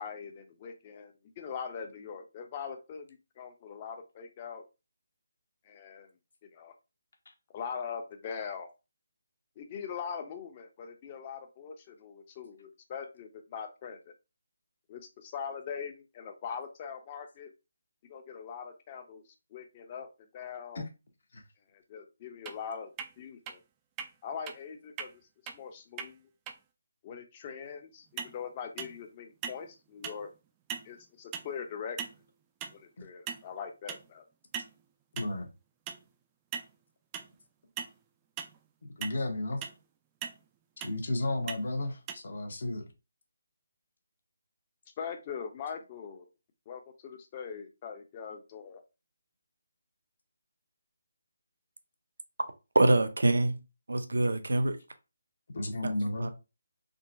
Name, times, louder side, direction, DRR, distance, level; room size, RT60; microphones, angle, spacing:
voice 1, 0.0-4.6 5.7-6.1 6.5-6.7 7.5-8.7 9.6-14.1 14.9-17.5 18.1-19.2 19.5-20.1 20.3-20.8 21.7-22.9 23.2-23.6 24.2-25.1 25.5-26.3 27.0-30.3 30.8-32.0 32.7-34.2 45.0-46.3 46.7-48.8, left 6 dB, 30° left, 0.6 m, -41 dB
sound 1, 22.5-22.6 23.0-23.1 23.5-23.6 24.0-24.1 24.5-24.6 25.0-25.1 25.5-25.6 26.0-26.1 26.5-26.6 28.2-28.4 28.8-29.1 29.4-29.7 30.0-30.3 30.7-30.9 31.3-31.5 32.0-32.2 32.6-32.8 33.3-33.5 33.9-34.1 34.5-34.7 35.2-35.3 35.9-36.0 36.5-36.7 37.1-37.3 37.8-37.9 38.4-38.6 39.0-39.2 39.6-39.8 40.2-40.4 40.8-41.0 41.5-41.6 42.1-42.2, right 7 dB, 20° right, 0.3 m, -39 dB
voice 2, 35.1-35.5 39.0-39.6 40.8-42.8 55.5-56.3, left 1 dB, 60° left, 0.9 m, -33 dB
voice 3, 52.7-53.6 53.9-54.8 55.8-55.9 56.2-56.3, right 2 dB, 80° right, 0.6 m, -25 dB
3.7 x 2.1 x 2.6 m
figure-of-eight pair, 155°, 0 cm